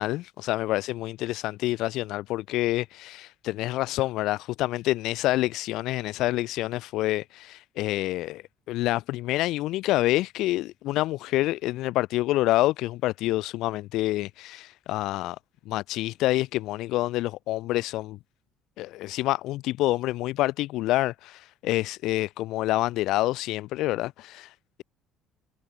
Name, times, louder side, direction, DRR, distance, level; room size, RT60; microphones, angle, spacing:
voice 1, 0.0-15.4 15.7-18.2 18.8-24.8, left 17 dB, 65° left, 7.6 m, -27 dB
cardioid pair, 150°, 0 cm